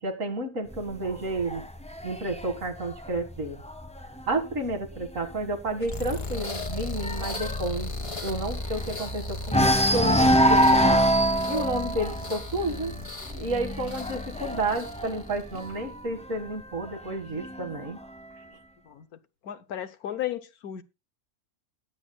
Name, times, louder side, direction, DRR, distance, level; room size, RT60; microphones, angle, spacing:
voice 1, 0.0-1.6 2.0-3.6 4.3-7.9 8.2-11.0 11.5-12.9 13.3-18.0, right 2 dB, 60° right, 2.3 m, -31 dB
sound 1, 0.7-4.3 4.7-5.1 5.3-5.4 5.8-9.1 9.5-16.0 16.9-17.9, equal, 5° left, 0.8 m, -25 dB
sound 2, 5.8-15.8, left 2 dB, 25° left, 1.2 m, -36 dB
voice 2, 18.8-20.8, left 11 dB, 80° left, 1.4 m, -35 dB
19.5 x 8.2 x 2.3 m
omnidirectional pair, 1.6 m